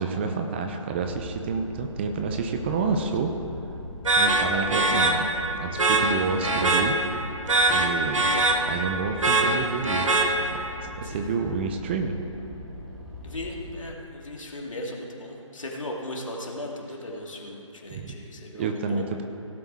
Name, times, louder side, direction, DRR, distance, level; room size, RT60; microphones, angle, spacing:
voice 1, 0.0-3.3 4.2-5.3 5.5-7.0 7.7-8.3 8.7-10.1 10.5-12.2 17.9-18.1 18.6-19.2, right 5 dB, 20° right, 5 dB, 0.6 m, -29 dB
sound 1, 0.9-13.8, left 2 dB, ahead, 1.6 m, -41 dB
sound 2, 4.0-10.8, right 2 dB, 75° right, 1.7 m, -23 dB
voice 2, 13.2-19.0, left 1 dB, 75° left, -1 dB, 2.7 m, -37 dB
16.5 x 8.0 x 4.8 m, 2.9 s
figure-of-eight pair, 145°, 17 cm